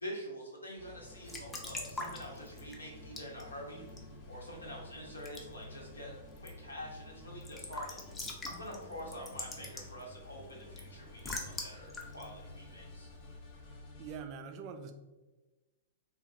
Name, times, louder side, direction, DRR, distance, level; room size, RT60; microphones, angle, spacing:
voice 1, 0.0-3.8 4.3-8.0 8.4-13.1, equal, 85° left, -2 dB, 0.8 m, -46 dB
sound 1, 0.8-14.2, left 2 dB, 55° left, 0.7 m, -52 dB
Raindrop / Drip / Trickle dribble, 1.0-13.5, left 2 dB, 15° left, 0.5 m, -46 dB
voice 2, 14.0-14.9, right 6 dB, 40° right, 6 dB, 0.3 m, -43 dB
3.1 x 2.3 x 2.5 m, 1.2 s
figure-of-eight pair, 110°, 0 cm